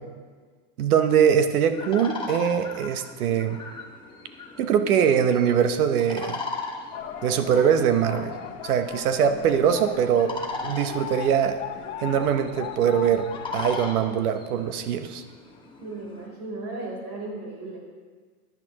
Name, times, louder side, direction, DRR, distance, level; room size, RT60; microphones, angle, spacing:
voice 1, 0.8-3.6 4.6-6.4 7.2-8.4 8.6-10.3 10.6-11.6 12.0-13.2 13.5-15.2, right 8 dB, 75° right, 9 dB, 1.1 m, -22 dB
sound 1, 1.7-16.3, left 3 dB, 10° left, 1.0 m, -39 dB
sound 2, 6.9-13.9, left 9 dB, 50° left, 1.2 m, -38 dB
voice 2, 15.8-17.8, right 2 dB, 30° right, -2 dB, 3.7 m, -35 dB
13.5 x 10.5 x 3.0 m, 1.5 s
supercardioid pair, 140°, 45 cm